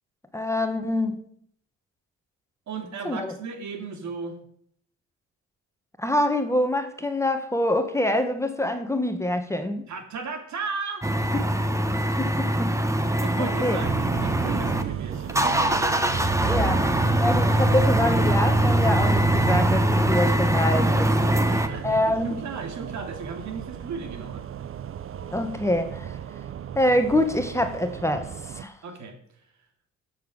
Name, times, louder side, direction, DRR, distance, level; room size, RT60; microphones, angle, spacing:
voice 1, 0.3-1.2 3.0-3.4 6.0-9.9 11.3-11.4 12.2-12.8 13.4-13.8 16.4-16.8 17.2-21.1 21.8-22.4 25.3-26.1 26.7-28.8, left 1 dB, 10° left, 1.5 m, -25 dB
voice 2, 2.7-4.4 9.9-11.1 13.2-15.7 21.5-24.7 28.8-29.1, right 4 dB, 70° right, 2.6 m, -35 dB
sound 1, 11.0-14.8 15.1-21.7, right 1 dB, 10° right, 1.3 m, -22 dB
sound 2, 13.8-28.6, right 9 dB, 45° right, 0.7 m, -33 dB
13.5 x 7.6 x 6.5 m
cardioid pair, 90°, 30 cm